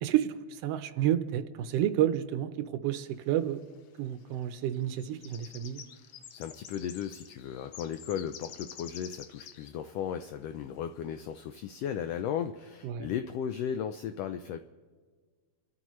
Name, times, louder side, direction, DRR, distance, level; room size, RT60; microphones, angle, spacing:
voice 1, 0.0-3.6 4.0-5.8 12.8-13.1, right 11 dB, 75° right, 10 dB, 1.5 m, -30 dB
sound 1, 3.3-3.4 4.2-4.4 4.7-9.7 10.0-10.1 10.5-10.6 11.4-11.5 11.9-12.1, left 9 dB, 65° left, 1.6 m, -48 dB
voice 2, 6.3-14.6, left 8 dB, 85° left, 9 dB, 1.4 m, -35 dB
29.5 x 13.5 x 3.1 m, 1.5 s
omnidirectional pair, 3.4 m